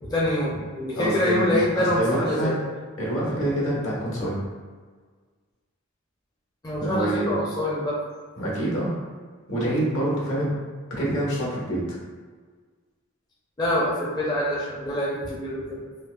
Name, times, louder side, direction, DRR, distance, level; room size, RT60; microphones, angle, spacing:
voice 1, 0.0-2.5 6.6-8.0 13.6-15.9, left 1 dB, 20° left, -7 dB, 0.5 m, -25 dB
voice 2, 0.9-2.6 3.0-4.4 6.8-7.4 8.4-8.9 9.5-10.5 10.9-12.0, right 1 dB, 65° left, -6 dB, 1.2 m, -26 dB
5.2 x 2.3 x 2.3 m, 1.5 s
head